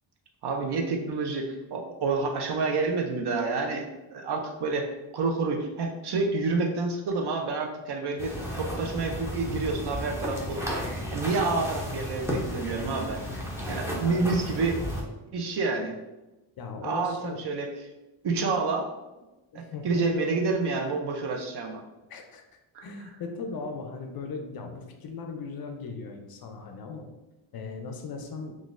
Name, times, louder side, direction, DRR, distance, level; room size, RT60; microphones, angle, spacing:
voice 1, 0.4-3.9 4.1-4.9 5.1-8.3 8.6-13.2 13.7-14.8 15.3-15.9 16.8-17.7 18.2-18.9 19.5-21.8 22.7-22.9, right 3 dB, 55° right, 3 dB, 0.6 m, -28 dB
sound 1, 8.2-15.0, equal, 5° right, 0.5 m, -34 dB
voice 2, 14.0-14.8 16.6-17.5 19.5-20.1 22.1-27.2 27.5-28.6, left 4 dB, 50° left, 5 dB, 0.4 m, -38 dB
3.8 x 2.5 x 2.4 m, 1.0 s
cardioid pair, 125°, 48 cm